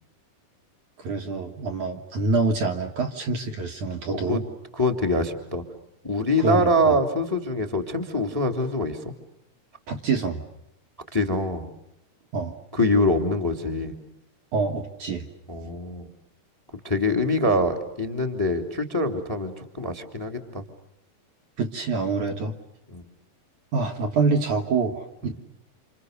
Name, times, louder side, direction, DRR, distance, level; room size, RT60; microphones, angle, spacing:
voice 1, 1.0-4.4 6.4-7.0 9.9-10.4 12.3-12.5 14.5-15.3 21.6-22.6 23.7-25.4, right 4 dB, 55° right, 4 dB, 2.7 m, -26 dB
voice 2, 4.1-4.4 4.7-5.6 6.0-9.0 11.1-11.7 12.7-13.9 15.5-16.1 16.8-20.6 22.9-23.1 25.2-25.3, left 1 dB, 5° left, 7 dB, 2.2 m, -24 dB
30.0 x 29.0 x 6.7 m, 0.81 s
omnidirectional pair, 4.7 m